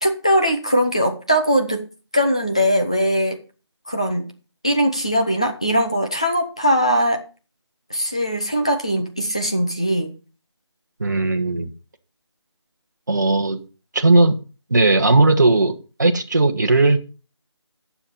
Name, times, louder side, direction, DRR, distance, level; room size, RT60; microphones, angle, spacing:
voice 1, 0.0-1.8 2.1-3.4 3.9-4.3 4.6-7.2 7.9-10.1, equal, 15° left, 4 dB, 0.6 m, -20 dB
voice 2, 11.0-11.7 13.1-13.6 13.9-14.4 14.7-17.0, right 2 dB, 40° right, 5 dB, 1.2 m, -17 dB
12.5 x 7.1 x 5.5 m, 0.35 s
figure-of-eight pair, 175°, 15 cm